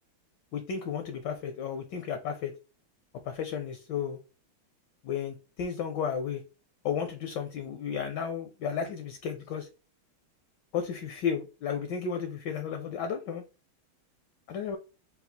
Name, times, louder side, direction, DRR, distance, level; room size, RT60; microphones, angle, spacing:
voice 1, 0.5-2.5 3.3-4.2 5.0-6.4 6.8-9.7 10.7-13.4 14.5-14.8, left 7 dB, 75° left, 7 dB, 1.0 m, -33 dB
4.0 x 2.2 x 4.2 m, 0.32 s
omnidirectional pair, 2.3 m